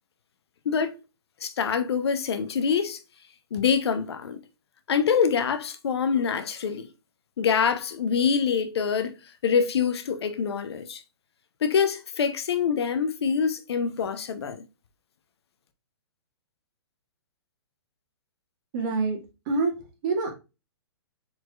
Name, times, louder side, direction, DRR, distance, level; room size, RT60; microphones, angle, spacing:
voice 1, 0.6-1.0 1.4-3.0 3.5-4.4 4.9-6.9 7.4-9.1 9.4-11.0 11.6-14.6, left 6 dB, 70° left, 0.9 m, -25 dB
voice 2, 18.7-19.2 19.5-19.8 20.0-20.3, right 3 dB, 45° right, 2.0 m, -25 dB
4.7 x 4.4 x 2.4 m
hypercardioid pair, 135°, 14 cm